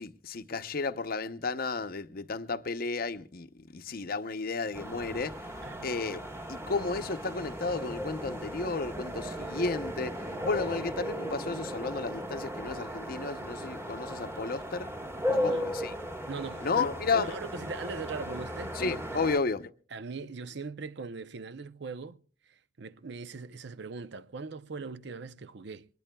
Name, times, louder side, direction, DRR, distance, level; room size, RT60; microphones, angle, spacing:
voice 1, 0.0-3.5 3.7-5.4 5.8-6.2 6.5-10.2 10.4-14.9 15.4-15.9 16.6-17.3 18.7-19.7, left 4 dB, 50° left, 0.7 m, -32 dB
sound 1, 4.7-19.4, equal, 15° right, 1.4 m, -36 dB
voice 2, 15.3-15.7 16.3-18.8 19.1-19.2 19.9-22.2 22.5-25.9, right 4 dB, 65° right, 0.6 m, -40 dB
23.5 x 20.0 x 2.3 m
head